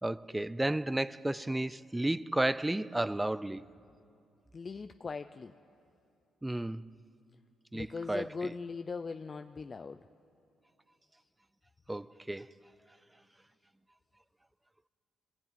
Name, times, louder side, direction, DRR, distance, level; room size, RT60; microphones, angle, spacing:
voice 1, 0.0-3.6 6.4-6.9 7.7-8.5 11.9-12.5, right 1 dB, 10° right, 0.5 m, -33 dB
voice 2, 4.5-5.5 7.7-10.0, left 4 dB, 35° left, 0.5 m, -40 dB
25.5 x 19.0 x 9.2 m
cardioid pair, 90°, 0 cm